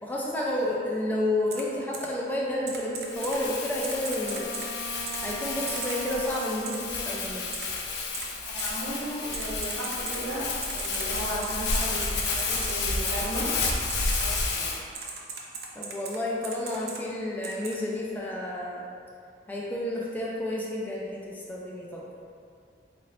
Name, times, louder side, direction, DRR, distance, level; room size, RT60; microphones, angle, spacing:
voice 1, 0.0-4.6 5.2-7.4 15.8-18.9 19.5-22.1, left 1 dB, 10° left, -4 dB, 0.3 m, -30 dB
Typing, 1.5-1.6 1.9-2.1 2.7-3.4 3.8-4.7 5.1-5.2 5.7-6.0 6.6-6.8 7.5-7.6 8.1-8.3 8.6-8.7 9.3-10.2 10.6-12.7 13.1-13.2 13.7-14.5 14.9-16.2 16.4-17.0 17.4-17.7, right 5 dB, 60° right, 0.4 m, -37 dB
Crumpling crinkling, 3.1-14.8, left 3 dB, 75° left, 0.5 m, -31 dB
Wind instrument woodwind instrument, 3.1-8.5, right 2 dB, 40° left, 0.9 m, -42 dB
voice 2, 8.4-12.0 12.3-13.5 14.2-14.7, right 1 dB, 80° right, -7 dB, 1.0 m, -35 dB
3.7 x 2.5 x 3.3 m, 2.3 s
head